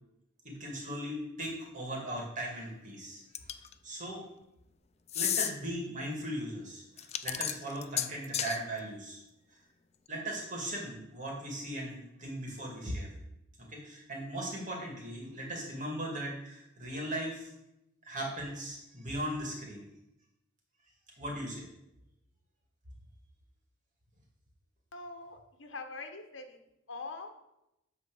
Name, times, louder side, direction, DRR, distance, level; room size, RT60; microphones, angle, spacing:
voice 1, 0.4-3.5 3.8-4.2 5.1-9.2 10.1-13.1 13.6-17.5 18.0-19.8 21.2-21.7, right 1 dB, 40° right, -1 dB, 2.4 m, -38 dB
sound 1, 3.3-3.7 5.1-5.5 7.0-8.6, left 10 dB, 35° left, 0.4 m, -32 dB
voice 2, 24.9-26.6 26.9-27.3, left 3 dB, 75° left, 5 dB, 1.2 m, -43 dB
9.6 x 3.9 x 7.0 m, 0.87 s
head